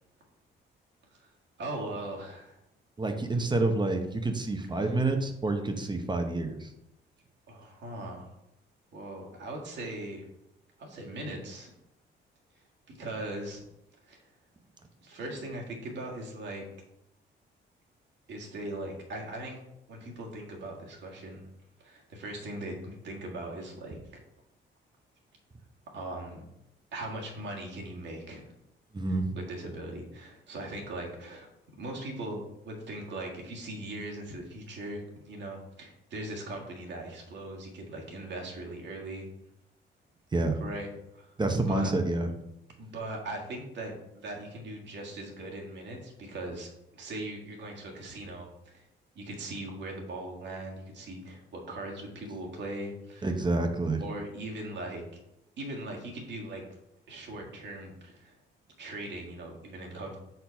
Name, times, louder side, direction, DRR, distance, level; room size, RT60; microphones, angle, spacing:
voice 1, 1.6-2.6 4.8-4.9 7.5-8.4 8.9-10.3 10.8-11.7 12.9-13.6 14.1-14.2 15.0-16.6 18.3-19.6 19.9-21.4 21.8-24.2 25.9-26.4 26.9-28.5 29.3-31.5 31.8-39.3 40.6-41.4 41.7-41.9 42.8-48.8 49.1-53.3 54.0-55.0 55.6-56.6 57.1-58.3 58.8-60.2, right 1 dB, 65° right, -1 dB, 1.6 m, -39 dB
voice 2, 3.0-6.7 28.9-29.3 40.3-40.6 41.4-42.3 53.2-54.0, right 2 dB, 20° right, 5 dB, 0.8 m, -28 dB
4.4 x 3.9 x 5.6 m, 0.86 s
cardioid pair, 90°, 20 cm